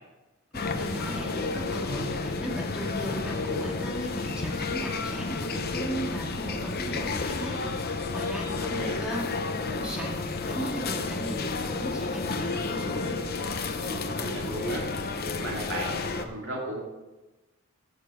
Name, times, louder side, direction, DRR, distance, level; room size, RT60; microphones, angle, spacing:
sound 1, 0.5-16.2, left 3 dB, 45° left, 0.8 m, -31 dB
voice 1, 0.5-13.1, right 1 dB, 5° right, -3 dB, 2.2 m, -37 dB
voice 2, 8.5-9.0 13.8-14.9 15.4-16.8, right 1 dB, 60° right, -3 dB, 2.5 m, -36 dB
15.5 x 6.6 x 4.9 m, 1.1 s
head